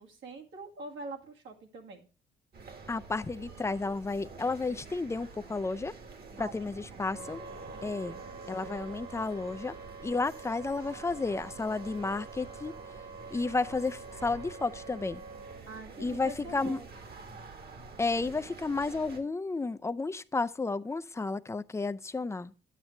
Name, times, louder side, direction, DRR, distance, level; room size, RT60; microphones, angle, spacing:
voice 1, 0.0-2.1 6.4-8.3 15.7-16.9, right 3 dB, 75° right, 1.9 m, -45 dB
sound 1, 2.5-19.2, right 4 dB, 50° right, 1.7 m, -48 dB
voice 2, 2.9-5.9 6.4-7.4 7.8-8.2 8.5-9.7 10.0-12.8 13.3-15.2 16.0-16.8 18.0-22.5, left 3 dB, 15° left, 0.4 m, -32 dB
Wind instrument woodwind instrument, 7.1-15.6, right 3 dB, 90° right, 2.3 m, -47 dB
9.0 x 8.9 x 3.2 m
cardioid pair, 90°, 20 cm